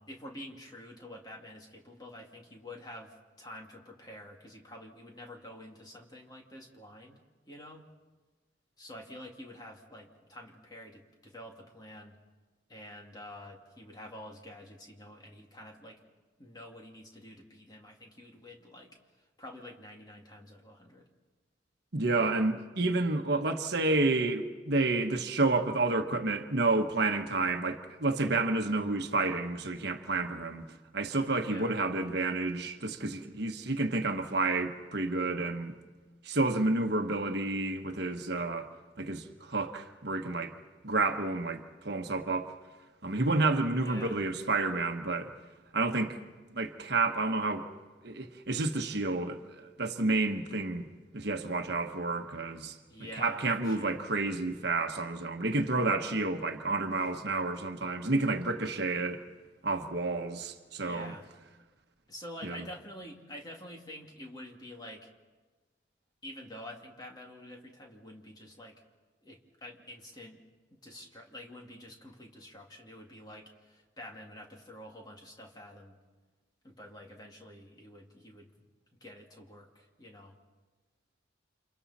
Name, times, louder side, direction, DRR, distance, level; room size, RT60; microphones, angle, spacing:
voice 1, 0.0-7.2 7.5-7.9 8.8-12.2 12.7-16.0 16.4-21.1 31.4-31.8 43.8-44.2 52.9-54.1 60.8-61.3 62.1-65.1 66.2-68.8 69.2-70.4 70.7-76.0 76.6-78.5 79.0-80.4, left 1 dB, 20° left, 2.4 m, -48 dB
voice 2, 21.9-30.6 30.9-35.7 36.2-38.7 39.0-40.5 40.8-42.5 43.0-45.3 45.7-46.2 46.5-47.7 48.0-50.9 51.1-52.8 53.2-59.2 59.6-61.1 62.4-62.6, right 2 dB, 55° right, 1.3 m, -30 dB
30.0 x 27.5 x 4.3 m
head